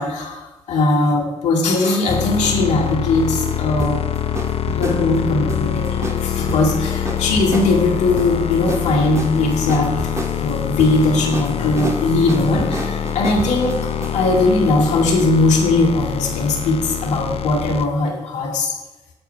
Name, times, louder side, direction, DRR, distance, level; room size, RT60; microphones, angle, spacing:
voice 1, 0.0-4.0 4.7-9.9 10.4-13.8 14.1-18.7, left 2 dB, 80° left, 0 dB, 2.0 m, -19 dB
sound 1, 2.1-17.9, left 9 dB, 60° left, 0.7 m, -25 dB
sound 2, 2.4-14.5, right 1 dB, 25° right, 1.8 m, -31 dB
13.5 x 4.7 x 5.6 m, 1.1 s
supercardioid pair, 50°, 12 cm